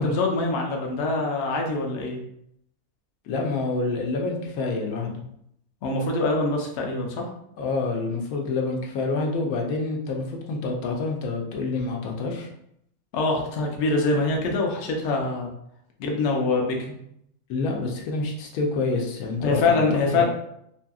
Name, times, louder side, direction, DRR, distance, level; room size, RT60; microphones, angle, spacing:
voice 1, 0.0-2.2 5.8-7.3 13.1-15.5 16.0-16.9 19.4-20.2, left 3 dB, 60° left, 1 dB, 0.8 m, -24 dB
voice 2, 3.3-5.2 7.6-12.5 17.5-19.8 20.1-20.2, left 3 dB, 85° left, 1 dB, 1.0 m, -27 dB
2.7 x 2.7 x 2.3 m, 0.74 s
omnidirectional pair, 1.5 m